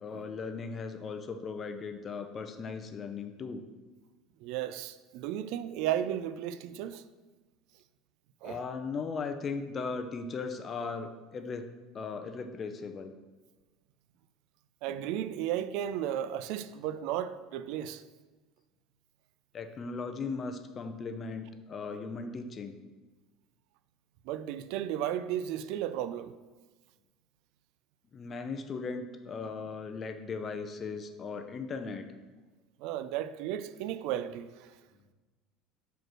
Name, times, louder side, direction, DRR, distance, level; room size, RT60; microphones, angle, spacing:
voice 1, 0.0-3.6 8.4-11.7 11.9-13.1 19.5-22.7 28.1-32.1, left 4 dB, 30° left, 0.6 m, -37 dB
voice 2, 4.4-7.0 8.4-8.6 14.8-18.0 24.3-26.3 32.8-34.7, right 11 dB, 70° right, 0.3 m, -34 dB
5.1 x 4.5 x 6.2 m
supercardioid pair, 130°, 0 cm